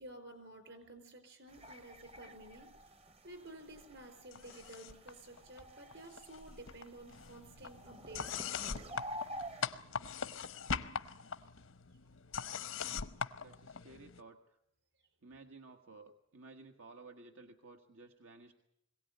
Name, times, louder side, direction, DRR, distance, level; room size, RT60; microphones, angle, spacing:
voice 1, 0.0-2.9 3.2-9.0 15.0-15.1, right 1 dB, 60° right, 9 dB, 4.7 m, -53 dB
sound 1, 1.5-9.7, equal, 30° right, 0.8 m, -50 dB
sound 2, 4.3-5.1 5.4-6.4 6.7-14.2, left 6 dB, 80° left, 0.9 m, -42 dB
voice 2, 13.4-14.6 15.2-18.5, right 3 dB, 90° right, 4 dB, 1.6 m, -55 dB
22.5 x 17.5 x 9.4 m, 0.78 s
head